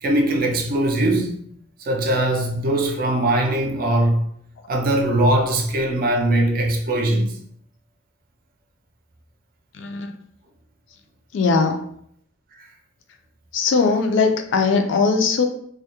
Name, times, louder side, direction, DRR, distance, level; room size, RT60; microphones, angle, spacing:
voice 1, 0.0-1.4 1.9-4.2 4.7-7.4, right 1 dB, 45° right, 0.4 m, -20 dB
voice 2, 9.8-10.1 11.3-11.8 13.5-15.4, left 4 dB, 60° left, 0.3 m, -19 dB
2.2 x 2.0 x 2.8 m
head